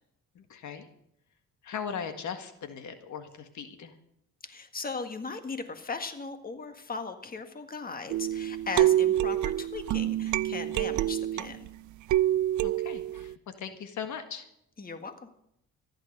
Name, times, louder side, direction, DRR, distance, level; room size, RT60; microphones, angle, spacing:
voice 1, 0.3-0.9 1.6-3.9 12.6-14.5, left 7 dB, 75° left, 8 dB, 1.7 m, -39 dB
voice 2, 4.4-11.7 14.8-15.3, left 4 dB, 30° left, 7 dB, 1.8 m, -38 dB
sound 1, 8.1-11.7 12.1-13.3, right 13 dB, 75° right, 0.5 m, -27 dB
15.0 x 11.5 x 6.7 m, 0.77 s
cardioid pair, 90°, 30 cm